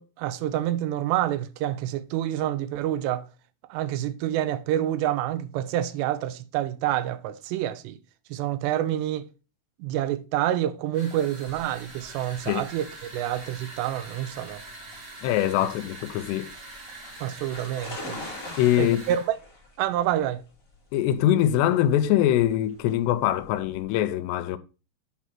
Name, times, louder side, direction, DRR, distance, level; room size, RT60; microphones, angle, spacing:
voice 1, 0.0-3.3 3.7-8.0 8.3-9.2 9.8-14.6 17.2-18.2 18.8-19.4 19.8-20.4, right 12 dB, 90° right, 2.8 m, -28 dB
sound 1, 10.9-19.3, right 2 dB, 40° right, 1.3 m, -43 dB
sound 2, 11.4-23.8, left 2 dB, 25° left, 2.1 m, -45 dB
voice 2, 15.2-16.5 18.6-19.0 20.9-24.6, left 12 dB, 90° left, 2.8 m, -23 dB
8.3 x 4.6 x 5.8 m
omnidirectional pair, 4.9 m